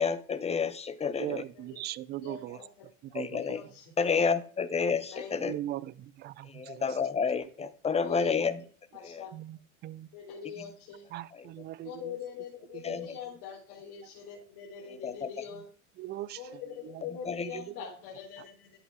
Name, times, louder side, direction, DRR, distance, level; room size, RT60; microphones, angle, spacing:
voice 1, 0.0-1.4 3.1-3.6 4.0-5.5 6.5-8.6 9.0-9.2 12.8-13.0 15.0-15.3 17.3-17.5, left 5 dB, 15° left, 0.9 m, -29 dB
voice 2, 1.2-2.6 3.0-3.7 5.4-7.0 9.3-10.1 11.1-12.2 12.7-13.0 16.0-16.4 16.8-17.0 17.4-17.7 18.4-18.5, right 14 dB, 25° right, 0.4 m, -40 dB
voice 3, 2.2-2.9 3.4-4.0 5.1-5.3 8.0-8.3 8.9-9.3 10.1-11.1 11.8-15.7 16.4-18.8, left 8 dB, 50° left, 3.9 m, -43 dB
11.0 x 7.9 x 3.7 m
hypercardioid pair, 115°, 44 cm